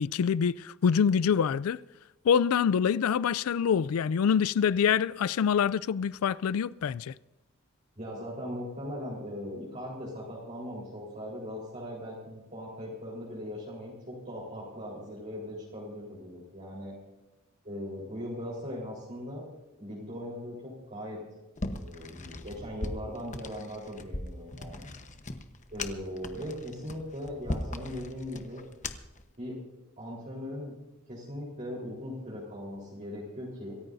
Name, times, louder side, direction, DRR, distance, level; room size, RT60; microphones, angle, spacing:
voice 1, 0.0-1.8 2.2-7.1, left 7 dB, 80° left, 0.4 m, -25 dB
voice 2, 8.0-17.0 17.6-19.5 19.8-21.2 21.7-24.9 25.7-28.6 29.4-29.6 30.0-30.7 31.1-33.8, equal, 35° right, 4.1 m, -39 dB
sound 1, 21.6-29.2, left 2 dB, 35° left, 1.1 m, -39 dB
27.0 x 14.5 x 2.7 m
head